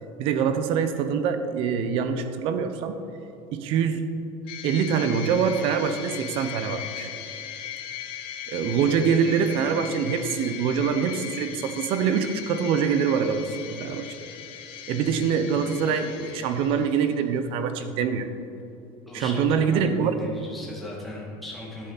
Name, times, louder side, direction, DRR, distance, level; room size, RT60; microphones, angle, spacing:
voice 1, 0.2-3.0 3.5-4.1 4.6-7.1 8.5-14.1 14.9-18.3 19.1-20.2, right 6 dB, 50° right, 9 dB, 0.8 m, -24 dB
sound 1, 4.5-17.3, left 9 dB, 50° left, 1.1 m, -38 dB
voice 2, 19.1-21.9, left 1 dB, ahead, -6 dB, 2.0 m, -37 dB
13.0 x 10.5 x 4.1 m, 2.9 s
cardioid pair, 165°, 12 cm